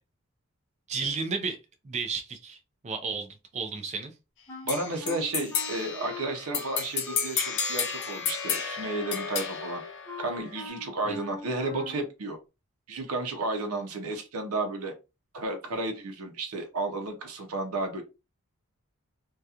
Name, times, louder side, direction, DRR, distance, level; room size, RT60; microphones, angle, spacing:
voice 1, 0.9-1.6 1.8-2.6 2.8-4.1 11.1-11.2, right 4 dB, 30° right, 6 dB, 0.4 m, -32 dB
Wind instrument woodwind instrument, 4.5-7.4 7.6-12.1, left 2 dB, 10° left, 0.6 m, -43 dB
voice 2, 4.6-9.8 10.2-12.4 12.9-14.9 15.3-18.0, right 2 dB, 85° right, 3 dB, 0.6 m, -32 dB
sound 1, 4.7-10.7, left 7 dB, 55° left, 0.6 m, -32 dB
2.8 x 2.3 x 2.4 m, 0.28 s
head